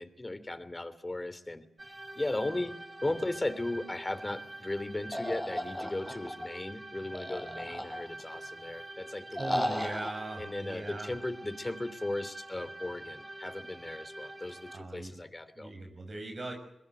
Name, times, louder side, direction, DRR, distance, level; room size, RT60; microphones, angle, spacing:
voice 1, 0.0-1.6 2.2-2.7 3.0-9.8 10.4-15.7, left 2 dB, 25° left, 14 dB, 2.9 m, -36 dB
sound 1, 1.8-14.8, right 1 dB, 20° right, 3.9 m, -46 dB
sound 2, 5.1-6.4 7.1-8.3 9.3-10.1, equal, 5° left, 5.8 m, -34 dB
voice 2, 9.4-11.1 14.7-15.2 15.6-16.5, right 2 dB, 50° right, 3 dB, 6.3 m, -40 dB
22.5 x 21.0 x 8.0 m, 0.81 s
cardioid pair, 60°, 0 cm